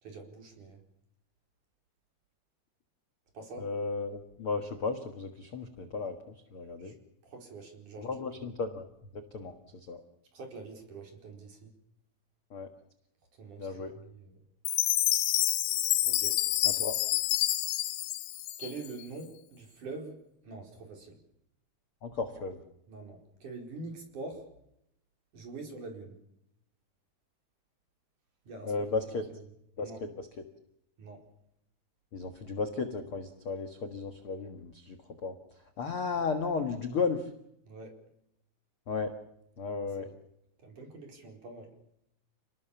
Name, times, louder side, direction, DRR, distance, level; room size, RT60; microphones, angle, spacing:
voice 1, 0.0-0.8 3.3-3.7 6.8-6.9 7.2-8.2 10.3-11.7 13.4-14.3 16.0-16.4 18.6-20.2 20.4-21.2 22.9-24.4 25.3-26.2 28.5-28.9 29.8-30.0 31.0-31.2 37.7-38.0 40.0-40.1 40.6-41.7, right 3 dB, 45° right, 2 dB, 5.8 m, -45 dB
voice 2, 3.6-6.9 8.0-8.8 9.1-10.0 12.5-12.7 13.6-13.9 16.6-16.9 22.0-22.6 28.6-29.2 29.8-30.3 32.1-35.3 35.8-37.3 38.9-39.1 39.6-40.1, left 4 dB, 55° left, 6 dB, 1.6 m, -34 dB
Chime, 14.7-19.0, left 15 dB, 85° left, 3.3 m, -28 dB
29.5 x 19.5 x 7.1 m, 0.78 s
omnidirectional pair, 5.0 m